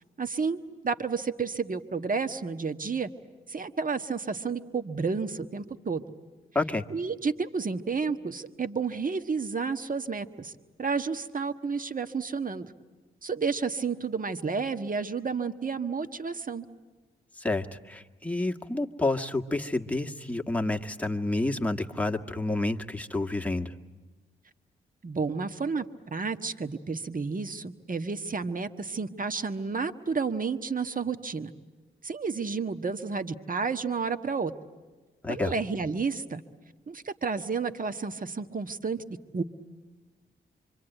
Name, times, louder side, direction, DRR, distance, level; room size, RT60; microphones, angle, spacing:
voice 1, 0.2-3.1 3.5-6.0 6.9-10.5 10.8-12.7 13.2-16.6 25.0-31.5 32.0-34.5 35.3-36.4 36.9-39.0 39.3-39.4, right 5 dB, 40° right, 9 dB, 1.5 m, -31 dB
voice 2, 17.4-23.7 35.2-35.5, left 2 dB, 5° left, 2 dB, 1.7 m, -29 dB
25.5 x 24.5 x 9.2 m, 1.3 s
supercardioid pair, 40°, 21 cm